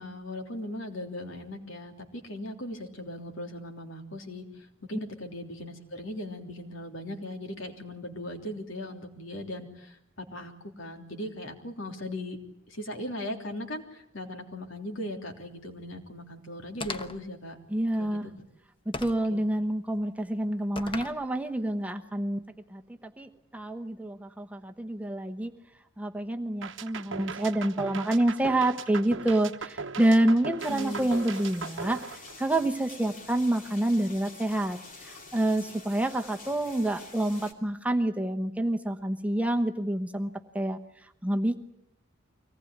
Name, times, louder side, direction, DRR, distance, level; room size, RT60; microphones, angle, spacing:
voice 1, 0.0-12.4 12.7-17.6 18.0-18.3 19.3-19.4 30.7-31.0, left 1 dB, 70° left, 4 dB, 3.3 m, -38 dB
sound 1, 16.8-17.3 18.9-19.3 20.8-21.2, left 2 dB, 25° left, 1.2 m, -37 dB
voice 2, 17.7-18.3 18.8-22.4 22.7-25.5 26.0-41.6, right 1 dB, 5° right, 4 dB, 1.1 m, -28 dB
sound 2, 26.6-32.8, right 5 dB, 65° right, 1.0 m, -38 dB
sound 3, 30.6-37.5, left 3 dB, 45° left, 2.9 m, -47 dB
24.5 x 19.0 x 9.5 m, 0.77 s
head